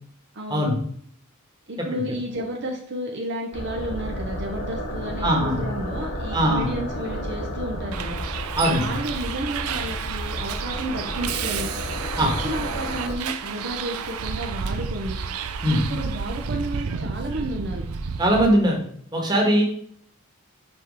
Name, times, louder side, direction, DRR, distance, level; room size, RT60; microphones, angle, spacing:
voice 1, 0.3-0.7 1.7-8.2 8.6-11.7 12.2-15.2 15.7-17.8, right 1 dB, 55° right, 1 dB, 0.8 m, -32 dB
sound 1, 3.5-13.1, equal, 50° left, 1.3 m, -32 dB
voice 2, 5.2-5.6 6.3-6.7 8.6-8.8 12.2-12.3 15.6-15.8 18.2-18.8 19.1-19.6, equal, 20° right, -1 dB, 1.6 m, -20 dB
Bus, 7.9-18.5, right 6 dB, 85° right, 0.5 m, -31 dB
6.2 x 4.6 x 4.8 m, 0.63 s
head